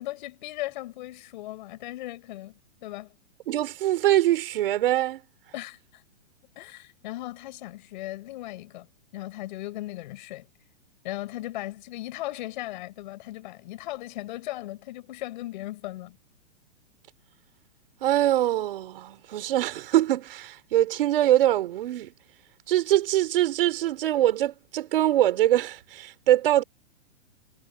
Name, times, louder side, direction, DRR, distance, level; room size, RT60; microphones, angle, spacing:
voice 1, 0.0-2.5 2.8-3.2 5.5-6.0 6.6-8.9 9.1-10.5 11.0-16.2, left 17 dB, 45° left, 4.6 m, -37 dB
voice 2, 3.5-5.2 18.0-22.1 22.7-26.6, right 13 dB, 55° right, 4.2 m, -23 dB
hypercardioid pair, 160°, 34 cm